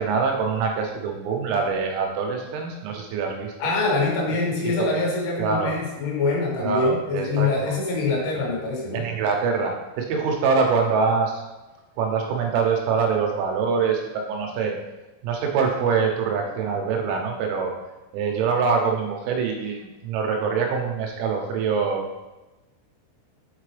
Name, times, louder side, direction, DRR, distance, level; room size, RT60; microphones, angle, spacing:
voice 1, 0.0-3.7 5.4-5.7 6.6-7.7 8.9-11.4 12.0-14.8 15.2-17.7 18.1-22.1, right 5 dB, 90° right, 1 dB, 3.6 m, -24 dB
voice 2, 3.6-9.0, left 3 dB, 75° left, -3 dB, 3.5 m, -24 dB
8.2 x 3.8 x 3.3 m, 1.1 s
omnidirectional pair, 6.0 m